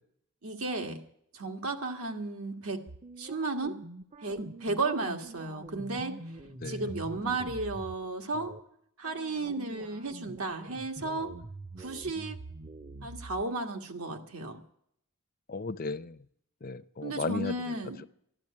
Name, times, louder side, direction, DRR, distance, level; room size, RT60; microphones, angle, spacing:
voice 1, 0.4-1.0 1.3-2.9 3.2-3.8 4.2-6.1 6.7-8.6 9.0-11.3 11.8-12.4 13.0-14.6 17.0-18.0, right 3 dB, 80° right, 1.7 m, -34 dB
sound 1, 2.9-8.0 8.3-8.6 9.0-13.4, right 2 dB, 30° right, 0.6 m, -45 dB
voice 2, 15.5-16.2 16.6-17.8, left 3 dB, 40° left, 0.6 m, -35 dB
13.0 x 12.0 x 8.6 m
head